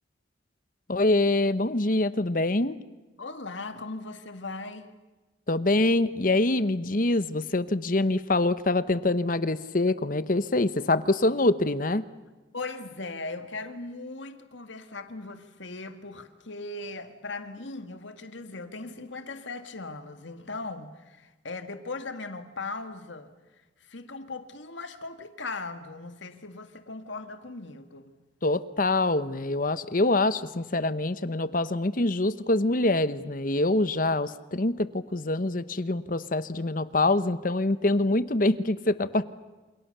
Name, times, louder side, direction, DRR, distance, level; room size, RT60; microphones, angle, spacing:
voice 1, 0.9-2.8 5.5-12.0 28.4-39.2, left 2 dB, 45° left, 1.0 m, -25 dB
voice 2, 3.2-4.9 12.5-28.2, left 3 dB, 75° left, 2.0 m, -39 dB
28.5 x 28.0 x 6.8 m
head